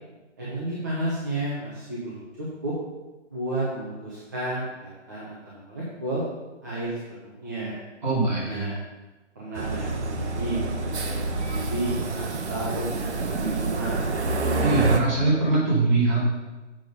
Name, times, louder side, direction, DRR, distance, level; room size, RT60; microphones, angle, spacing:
voice 1, 0.4-2.7 3.3-6.2 6.6-7.8 8.5-8.8 9.3-14.0, right 1 dB, 15° right, -8 dB, 0.9 m, -32 dB
voice 2, 8.0-8.7 14.6-16.2, right 3 dB, 40° right, -7 dB, 2.8 m, -22 dB
sound 1, 9.6-15.0, right 3 dB, 65° right, 1.2 m, -28 dB
7.5 x 6.1 x 5.2 m, 1.1 s
hypercardioid pair, 170°, 37 cm